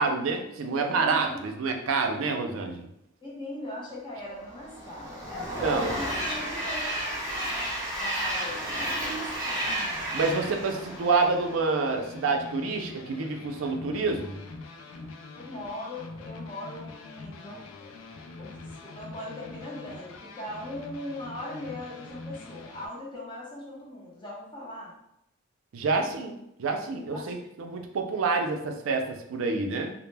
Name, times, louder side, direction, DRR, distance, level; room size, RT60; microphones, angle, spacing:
voice 1, 0.0-2.9 5.6-5.9 10.1-14.4 25.7-29.9, right 4 dB, 75° right, 4 dB, 0.4 m, -28 dB
voice 2, 0.6-1.5 3.2-7.7 8.0-9.7 15.0-15.1 15.3-17.9 18.4-24.9 27.1-27.3, left 1 dB, 25° left, -5 dB, 0.7 m, -40 dB
Train, 4.4-11.9, right 1 dB, 15° right, 0.5 m, -32 dB
sound 1, 9.2-22.9, left 3 dB, 75° left, 0.3 m, -44 dB
2.1 x 2.0 x 3.2 m, 0.80 s
head